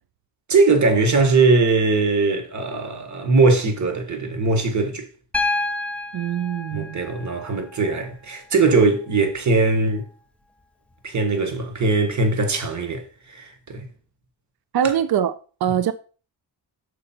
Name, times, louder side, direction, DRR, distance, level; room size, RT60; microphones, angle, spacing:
voice 1, 0.5-5.1 6.7-10.0 11.0-13.0 13.3-13.9 14.8-14.9, right 3 dB, 45° right, 1.5 m, -20 dB
Piano, 5.3-9.3 10.9-11.0, left 2 dB, 5° left, 0.7 m, -30 dB
voice 2, 6.1-7.0 14.7-15.3 15.6-15.9, right 9 dB, 60° right, 0.6 m, -22 dB
6.6 x 5.3 x 4.3 m
wide cardioid pair, 110°, 41 cm